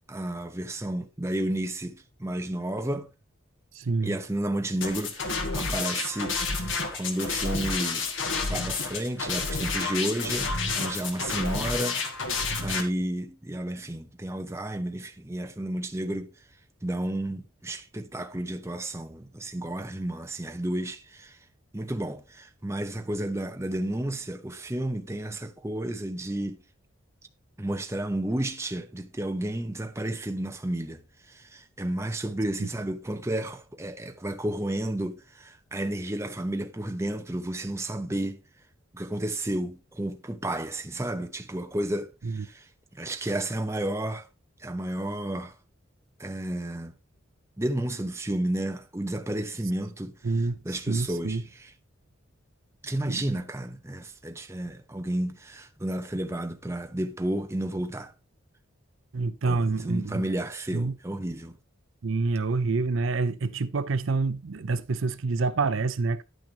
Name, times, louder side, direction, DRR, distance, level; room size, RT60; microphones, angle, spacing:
voice 1, 0.1-3.1 4.0-8.1 8.4-12.0 12.6-16.3 16.8-21.4 21.7-26.6 27.6-38.4 38.9-44.3 44.6-45.6 46.2-46.9 47.6-51.7 52.8-58.1 59.5-61.6, right 1 dB, 15° right, 0.7 m, -32 dB
voice 2, 3.7-4.1 32.6-32.7 42.2-42.4 50.2-51.4 53.0-53.2 59.1-60.2 60.7-60.9 62.0-66.2, right 3 dB, 70° right, 0.6 m, -27 dB
sound 1, 4.8-12.8, left 4 dB, 65° left, 1.9 m, -30 dB
10.5 x 9.2 x 2.8 m
head